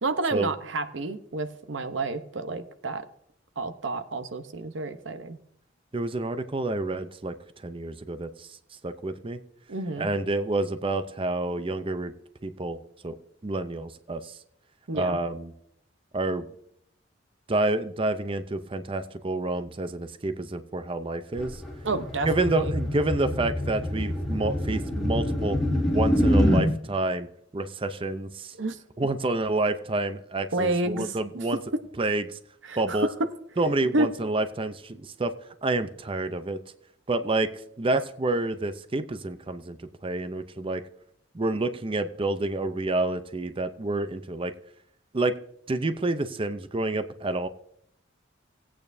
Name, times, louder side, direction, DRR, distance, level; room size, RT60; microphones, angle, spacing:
voice 1, 0.0-3.0 3.6-5.4 9.7-10.1 14.9-15.2 21.8-22.7 28.6-28.8 30.5-31.4 32.6-33.1 33.9-34.1, right 2 dB, 85° right, 10 dB, 0.9 m, -30 dB
voice 2, 5.9-7.3 7.6-8.5 8.8-9.4 10.0-12.1 12.4-13.1 13.4-14.4 14.9-15.5 16.1-16.5 17.5-21.6 22.3-25.6 25.9-27.3 27.5-28.5 29.0-31.6 32.0-32.4 32.8-33.1 33.6-35.3 35.6-36.6 37.1-37.5 37.8-39.8 40.0-40.8 41.3-44.5 45.1-45.4 45.7-47.5, right 2 dB, 30° right, 10 dB, 0.6 m, -28 dB
sound 1, 21.4-26.7, left 1 dB, ahead, 2.9 m, -25 dB
18.5 x 8.7 x 2.7 m, 0.73 s
head